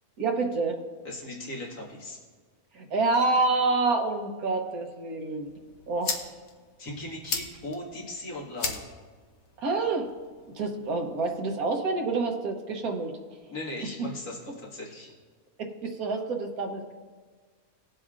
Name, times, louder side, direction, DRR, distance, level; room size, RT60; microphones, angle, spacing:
voice 1, 0.2-0.8 2.7-5.5 5.9-6.3 9.6-10.1 10.5-13.2 15.6-16.9, right 3 dB, 75° right, 4 dB, 1.5 m, -27 dB
voice 2, 1.0-2.2 6.8-8.9 13.5-15.1, left 1 dB, 85° left, -4 dB, 2.4 m, -38 dB
sound 1, 5.4-11.4, left 4 dB, 65° left, 1.4 m, -38 dB
20.5 x 7.7 x 2.5 m, 1.5 s
omnidirectional pair, 1.6 m